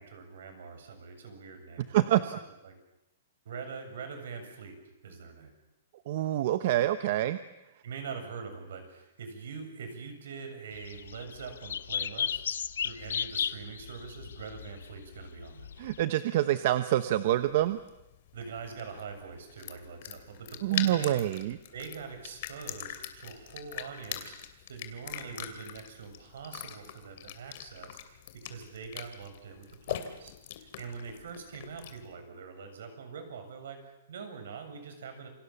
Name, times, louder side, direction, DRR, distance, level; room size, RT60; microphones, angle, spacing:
voice 1, 0.0-2.3 2.6-2.8 3.5-5.5 7.8-15.7 18.3-21.2 21.7-35.3, right 5 dB, 65° right, 7 dB, 7.2 m, -44 dB
voice 2, 1.9-2.4 6.1-7.4 15.8-17.8 20.6-21.6, right 13 dB, 40° right, 11 dB, 1.0 m, -26 dB
sound 1, 10.7-16.0, left 8 dB, 90° left, 1.2 m, -35 dB
sound 2, 17.3-32.1, left 11 dB, 40° left, 2.7 m, -42 dB
28.0 x 25.5 x 7.2 m, 0.91 s
hypercardioid pair, 170°, 0 cm